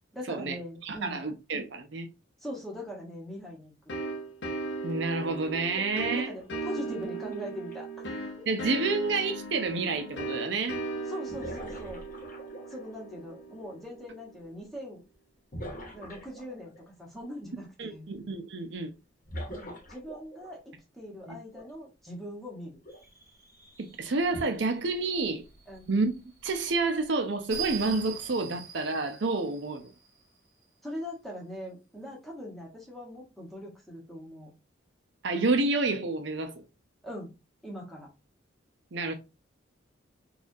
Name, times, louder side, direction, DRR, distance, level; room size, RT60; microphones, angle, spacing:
voice 1, 0.1-1.2 2.4-3.7 6.1-7.9 11.1-12.0 12.7-15.0 15.9-18.2 19.5-22.8 25.7-25.9 30.8-34.5 37.0-37.3 37.6-38.1, equal, ahead, 1.0 m, -41 dB
voice 2, 0.8-2.1 4.8-6.3 8.5-10.8 17.8-18.9 21.3-21.4 23.8-25.4 25.9-26.1 26.4-29.9 35.2-36.6 38.9-39.1, right 3 dB, 60° right, 0.6 m, -29 dB
sound 1, 3.9-14.4, right 2 dB, 60° left, 0.8 m, -38 dB
sound 2, 5.1-7.8 9.7-9.8 11.3-13.0 15.5-16.8 19.2-20.8 21.5-21.7 22.9-23.1 24.3-24.4, equal, 45° left, 1.0 m, -43 dB
sound 3, 22.9-30.4, right 8 dB, 15° right, 1.4 m, -44 dB
4.1 x 2.4 x 2.6 m
head